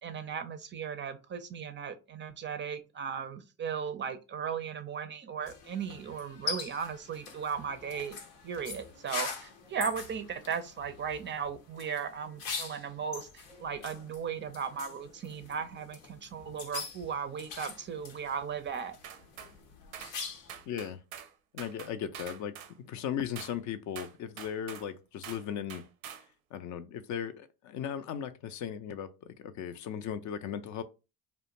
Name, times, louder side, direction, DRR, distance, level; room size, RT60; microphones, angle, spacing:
voice 1, 0.0-8.2 8.4-19.0, right 7 dB, 30° right, 0.4 m, -37 dB
sound 1, 5.4-20.6, left 5 dB, 90° left, 0.7 m, -43 dB
sound 2, 19.0-19.5 19.9-20.2 20.5-21.3 21.6-22.7 23.3-23.6 23.9-24.9 25.2-25.4 25.7-26.3, right 9 dB, 90° right, 0.5 m, -45 dB
voice 2, 20.7-21.0 21.5-25.8 26.5-29.1 29.4-30.8, left 9 dB, 50° left, 0.4 m, -37 dB
2.5 x 2.1 x 2.9 m
hypercardioid pair, 70°, 39 cm